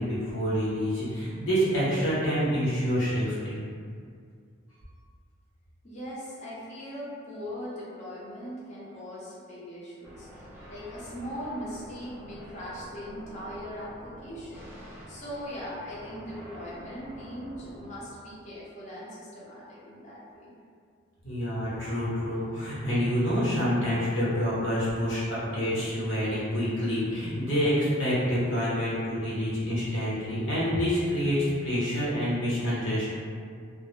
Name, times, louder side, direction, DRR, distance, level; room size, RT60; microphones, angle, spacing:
voice 1, 0.0-3.6 21.2-33.1, equal, 75° left, -9 dB, 0.9 m, -27 dB
voice 2, 5.8-20.5, equal, 35° left, -7 dB, 0.6 m, -40 dB
sound 1, 10.0-18.0, equal, 10° right, 0.4 m, -47 dB
2.1 x 2.0 x 3.1 m, 2.2 s
head